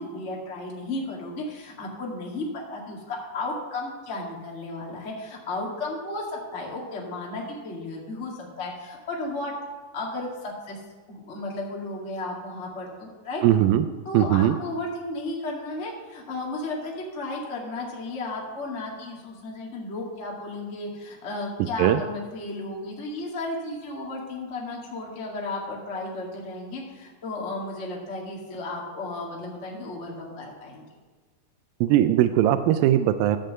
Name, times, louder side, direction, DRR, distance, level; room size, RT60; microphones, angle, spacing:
voice 1, 0.0-8.3 8.6-9.5 9.9-10.8 11.1-13.4 14.0-30.8, left 2 dB, 25° left, -2 dB, 1.7 m, -34 dB
voice 2, 13.4-13.9 14.1-14.6 21.8-22.0 31.8-33.4, right 12 dB, 85° right, 10 dB, 2.3 m, -20 dB
13.0 x 5.2 x 7.7 m, 1.4 s
omnidirectional pair, 4.1 m